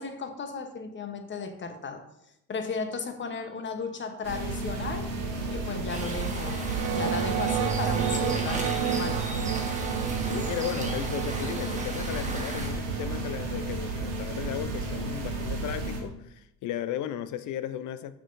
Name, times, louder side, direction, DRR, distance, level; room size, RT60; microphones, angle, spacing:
voice 1, 0.0-2.0 2.5-5.1 5.5-9.3, left 4 dB, 30° left, 7 dB, 0.9 m, -35 dB
sound 1, 4.2-16.0, right 2 dB, 90° right, 1.3 m, -33 dB
sound 2, 5.9-12.7, right 2 dB, 20° right, 1.5 m, -38 dB
sound 3, 6.6-15.2, right 10 dB, 55° right, 0.6 m, -32 dB
voice 2, 10.2-18.1, left 11 dB, 50° left, 12 dB, 0.6 m, -35 dB
6.3 x 6.1 x 2.6 m, 0.83 s
hypercardioid pair, 70°, 40 cm